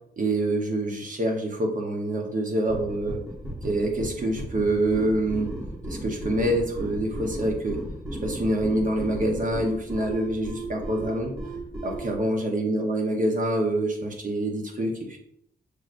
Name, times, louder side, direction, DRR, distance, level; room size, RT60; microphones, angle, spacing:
voice 1, 0.2-3.2 3.6-5.6 5.9-7.8 8.2-11.4 11.8-15.2, right 1 dB, 45° right, 1 dB, 0.9 m, -26 dB
sound 1, 2.7-12.2, right 1 dB, 20° right, 1.0 m, -35 dB
6.3 x 3.1 x 2.5 m, 0.71 s
wide cardioid pair, 140°, 18 cm